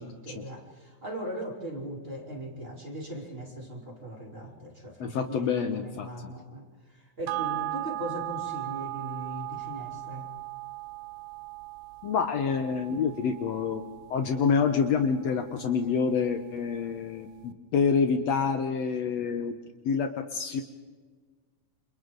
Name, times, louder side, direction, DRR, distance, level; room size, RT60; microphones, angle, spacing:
voice 1, 0.0-10.3, right 1 dB, 20° right, 0 dB, 3.6 m, -39 dB
voice 2, 5.0-6.3 12.0-13.8 14.1-19.6 19.9-20.6, left 6 dB, 70° left, 6 dB, 2.0 m, -27 dB
sound 1, 7.3-16.0 16.4-16.5, right 19 dB, 75° right, 2.2 m, -38 dB
29.5 x 28.0 x 3.9 m, 1.4 s
omnidirectional pair, 3.5 m